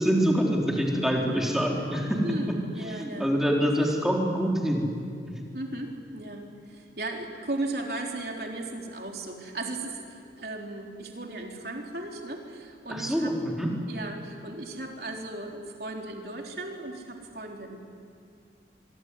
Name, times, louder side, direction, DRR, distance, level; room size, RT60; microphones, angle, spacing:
voice 1, 0.0-2.2 2.9-4.9 12.9-13.7, equal, ahead, -1 dB, 4.0 m, -25 dB
voice 2, 2.2-3.6 4.1-4.2 5.5-13.3 13.9-17.8, right 2 dB, 60° right, 1 dB, 3.9 m, -36 dB
25.0 x 23.0 x 9.8 m, 2.3 s
head